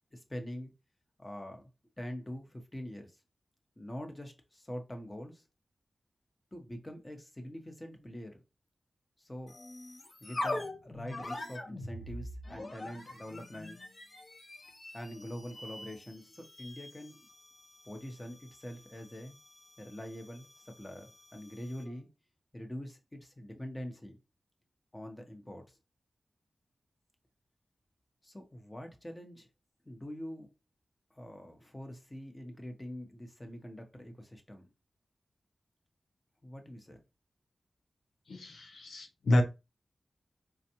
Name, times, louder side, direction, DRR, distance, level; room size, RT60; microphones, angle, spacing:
voice 1, 0.1-0.7 1.2-1.7 2.0-3.2 3.8-5.4 6.5-8.4 9.2-9.5 10.2-13.8 14.9-17.2 17.8-19.4 19.8-21.0 21.3-22.1 22.5-24.2 24.9-25.8 28.2-29.5 29.8-30.5 31.1-34.7 36.4-37.0, equal, 20° left, 0.9 m, -44 dB
sound 1, 9.5-22.0, left 2 dB, 55° left, 0.8 m, -44 dB
voice 2, 38.3-39.4, left 1 dB, 85° left, 0.6 m, -29 dB
4.4 x 2.4 x 2.8 m
cardioid pair, 60°, 0 cm